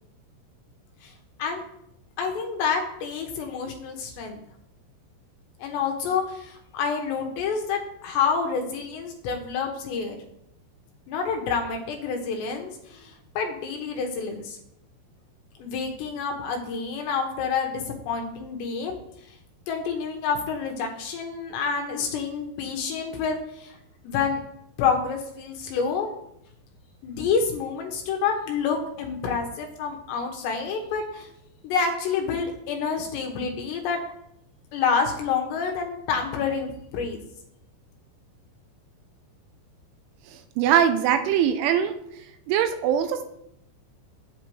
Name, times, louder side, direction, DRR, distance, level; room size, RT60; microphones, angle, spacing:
voice 1, 2.2-4.4 5.6-10.2 11.1-14.6 15.6-19.0 19.7-23.8 24.0-24.4 24.8-26.1 27.0-31.3 31.6-34.0 34.7-36.7 36.9-37.2, left 5 dB, 75° left, 3 dB, 2.8 m, -28 dB
voice 2, 40.6-41.9 42.5-43.2, right 9 dB, 85° right, 8 dB, 3.0 m, -21 dB
8.8 x 8.3 x 3.1 m, 0.78 s
omnidirectional pair, 5.6 m